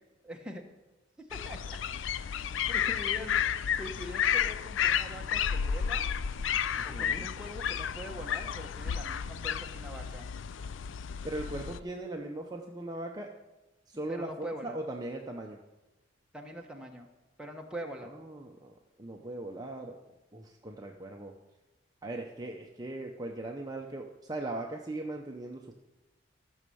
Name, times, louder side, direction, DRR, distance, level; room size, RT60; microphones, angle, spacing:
voice 1, 0.2-0.7 1.3-1.8 2.2-3.4 3.8-6.0 6.8-10.3 14.1-14.8 16.3-17.1 17.4-18.1, equal, 5° right, 1 dB, 1.2 m, -43 dB
sound 1, 1.3-11.8, left 8 dB, 75° left, 0.4 m, -32 dB
voice 2, 6.8-7.3 11.2-13.3 13.9-15.6 18.0-20.0 20.3-21.3 22.0-25.7, right 2 dB, 20° right, 1 dB, 0.8 m, -39 dB
14.5 x 6.4 x 7.0 m, 1.1 s
head